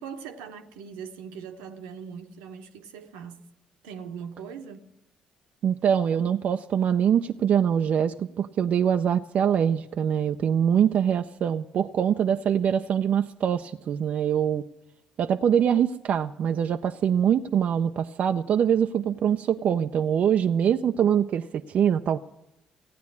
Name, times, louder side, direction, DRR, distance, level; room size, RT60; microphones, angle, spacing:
voice 1, 0.0-3.4 3.8-4.9, right 7 dB, 85° right, 1.1 m, -40 dB
voice 2, 5.6-14.7 15.2-22.2, right 8 dB, 60° right, 0.5 m, -24 dB
16.0 x 9.3 x 9.6 m
hypercardioid pair, 55°, 3 cm